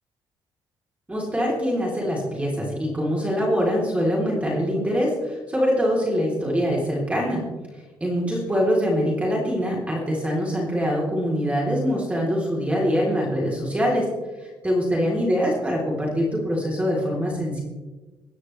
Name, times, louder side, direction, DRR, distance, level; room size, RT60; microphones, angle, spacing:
voice 1, 1.1-7.4 8.0-14.1 14.4-17.6, equal, 15° right, -3 dB, 3.4 m, -24 dB
22.5 x 9.9 x 3.3 m, 1.2 s
cardioid pair, 110°, 9 cm